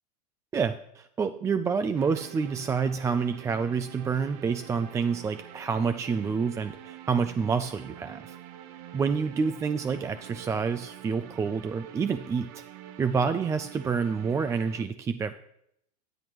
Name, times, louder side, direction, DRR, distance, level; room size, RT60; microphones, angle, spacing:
voice 1, 0.5-8.4 8.9-12.6 13.0-15.3, right 5 dB, 15° right, 10 dB, 0.3 m, -28 dB
sound 1, 1.9-14.8, right 11 dB, 60° right, 0.7 m, -46 dB
10.5 x 10.0 x 3.0 m, 0.75 s
hypercardioid pair, 115°, 21 cm